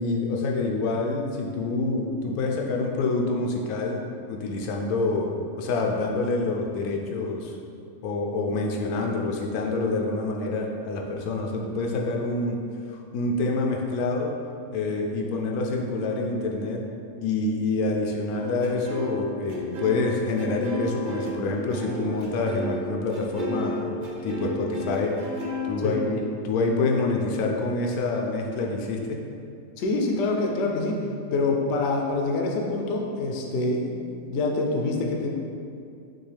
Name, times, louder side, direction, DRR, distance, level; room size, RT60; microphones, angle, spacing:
voice 1, 0.0-7.6 8.0-12.6 12.9-14.4 14.7-16.8 17.2-23.9 24.2-25.2 25.6-29.2, left 3 dB, 85° left, 1 dB, 1.1 m, -27 dB
sound 1, 18.3-25.7, equal, 60° right, 0.5 m, -33 dB
voice 2, 29.8-31.0 31.3-35.3, left 2 dB, 65° left, 1 dB, 0.7 m, -26 dB
6.1 x 2.3 x 3.3 m, 2.5 s
omnidirectional pair, 1.5 m